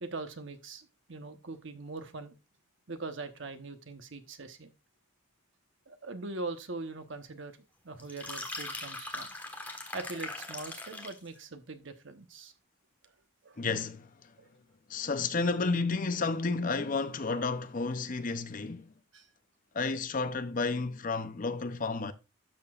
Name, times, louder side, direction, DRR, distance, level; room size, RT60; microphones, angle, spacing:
voice 1, 0.0-2.3 2.9-4.7 5.9-7.6 7.8-9.3 9.9-12.5 13.0-13.1 13.4-13.6 14.4-14.5 14.9-15.0 19.1-19.3, right 3 dB, 60° right, 1.1 m, -42 dB
sound 1, 8.0-11.3, left 2 dB, 10° left, 1.3 m, -40 dB
voice 2, 13.6-14.3 14.9-18.9 19.7-22.1, left 4 dB, 40° left, 0.6 m, -31 dB
12.0 x 6.8 x 2.4 m
head